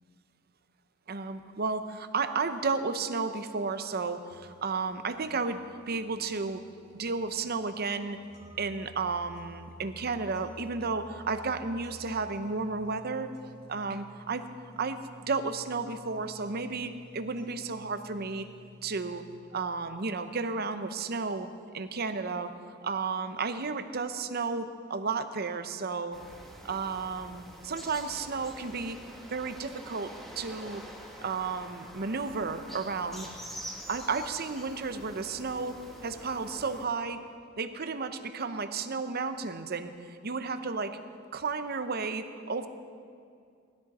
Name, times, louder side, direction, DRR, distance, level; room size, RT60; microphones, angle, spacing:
voice 1, 1.1-6.6 6.9-8.2 8.6-13.3 13.7-14.5 14.8-15.0 15.3-18.5 18.8-19.2 19.5-21.5 21.7-22.5 22.8-26.2 26.6-29.0 29.3-30.8 31.2-33.3 33.9-37.2 37.6-41.0 41.3-42.7, right 4 dB, 50° right, 9 dB, 0.8 m, -33 dB
sound 1, 3.4-19.4, equal, 35° right, 2.2 m, -53 dB
sound 2, 26.1-36.9, equal, ahead, 1.3 m, -46 dB
19.0 x 13.0 x 4.2 m, 2.3 s
head